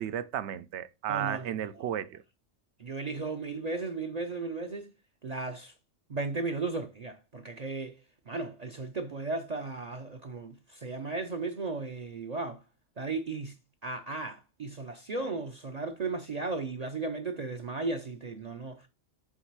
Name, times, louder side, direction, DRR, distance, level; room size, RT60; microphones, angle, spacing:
voice 1, 0.0-2.2, right 10 dB, 75° right, 0.9 m, -34 dB
voice 2, 1.1-1.9 2.8-4.9 5.2-5.7 6.1-8.0 8.3-12.6 13.0-13.5 13.8-18.9, right 3 dB, 45° right, 0.6 m, -35 dB
7.2 x 3.2 x 4.6 m
omnidirectional pair, 1.2 m